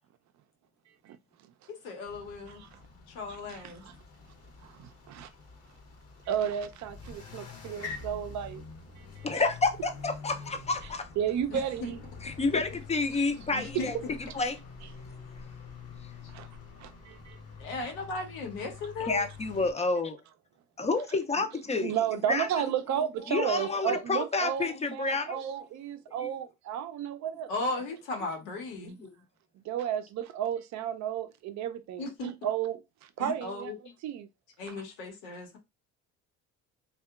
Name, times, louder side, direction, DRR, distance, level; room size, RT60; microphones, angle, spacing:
voice 1, 1.7-2.6 3.1-3.8 11.5-11.6 13.5-14.1 17.6-19.2 27.5-29.0 32.0-32.3 33.2-33.9 34.6-35.6, left 3 dB, 80° left, 1.0 m, -36 dB
sound 1, 2.0-19.7, left 5 dB, 45° left, 0.8 m, -47 dB
voice 2, 2.5-2.8 3.3-3.9 4.6-5.3 6.3-8.6 9.2-9.4 11.2-12.0 13.7-13.8 16.3-16.5 16.8-17.4 17.8-17.9 21.8-27.5 29.6-32.8 33.2-33.7 34.0-34.3, right 9 dB, 55° right, 0.5 m, -33 dB
voice 3, 9.2-11.1 12.2-14.0 14.3-14.6 19.1-20.2 20.8-21.9 22.3-22.5 23.3-25.4 26.2-26.3 28.8-29.1, left 3 dB, 20° left, 0.5 m, -29 dB
2.7 x 2.3 x 2.3 m
supercardioid pair, 70°, 35 cm